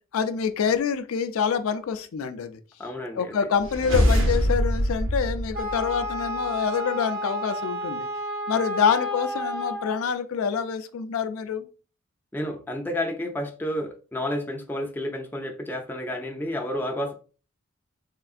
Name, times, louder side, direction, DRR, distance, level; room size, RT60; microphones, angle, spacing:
voice 1, 0.1-2.6 3.1-8.1 8.5-11.7, left 6 dB, 85° left, 0.4 m, -26 dB
voice 2, 2.8-3.3 12.3-17.1, left 1 dB, 10° left, 0.4 m, -30 dB
sound 1, 3.6-6.4, equal, 65° right, 1.0 m, -24 dB
Wind instrument woodwind instrument, 5.5-10.1, equal, 45° right, 0.8 m, -31 dB
3.6 x 3.3 x 2.4 m
head